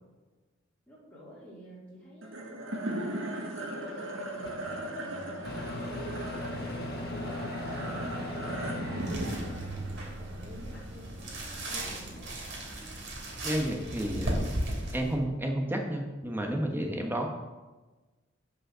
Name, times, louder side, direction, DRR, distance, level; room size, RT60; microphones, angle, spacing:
voice 1, 0.9-3.3 3.6-7.4 7.7-12.4, equal, 10° left, -10 dB, 2.6 m, -49 dB
sound 1, 2.2-12.7, right 1 dB, 75° right, 1.6 m, -38 dB
Microwave oven, 4.4-4.5 5.4-9.7, left 2 dB, 55° left, 1.3 m, -38 dB
sound 2, 9.0-15.1, right 1 dB, 60° right, 2.9 m, -36 dB
voice 2, 13.4-14.4 14.9-17.3, right 1 dB, 10° right, 2 dB, 1.3 m, -31 dB
9.7 x 5.3 x 6.3 m, 1.2 s
head